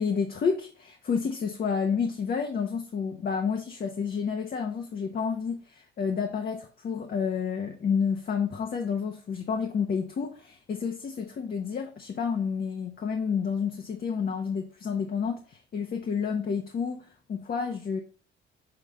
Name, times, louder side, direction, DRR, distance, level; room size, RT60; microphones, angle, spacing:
voice 1, 0.0-18.0, left 6 dB, 50° left, 1.0 m, -30 dB
6.8 x 3.5 x 3.9 m
cardioid pair, 90°, 20 cm